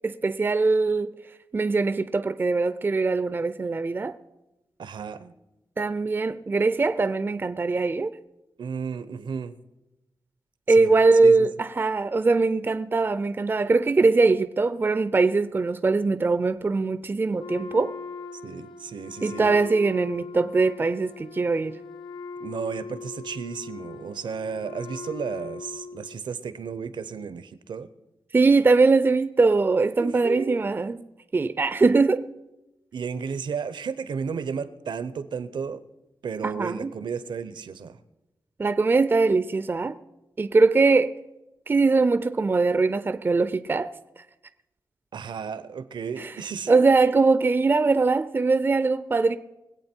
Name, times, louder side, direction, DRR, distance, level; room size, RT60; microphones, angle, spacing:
voice 1, 0.0-1.1 1.5-4.1 5.8-8.1 10.7-17.9 19.2-21.8 28.3-31.0 31.3-32.2 36.4-36.9 38.6-39.9 40.4-41.1 41.7-43.9 46.2-46.3 46.7-49.4, right 3 dB, 25° right, 0.4 m, -21 dB
voice 2, 4.8-5.3 8.6-9.6 10.7-10.9 11.2-11.5 18.4-19.6 22.4-27.9 30.0-30.6 32.9-35.8 36.2-38.0 45.1-46.8, right 6 dB, 80° right, 0.8 m, -33 dB
Wind instrument woodwind instrument, 17.4-26.2, left 5 dB, 90° left, 0.9 m, -40 dB
22.5 x 8.3 x 4.5 m
wide cardioid pair, 120°, 8 cm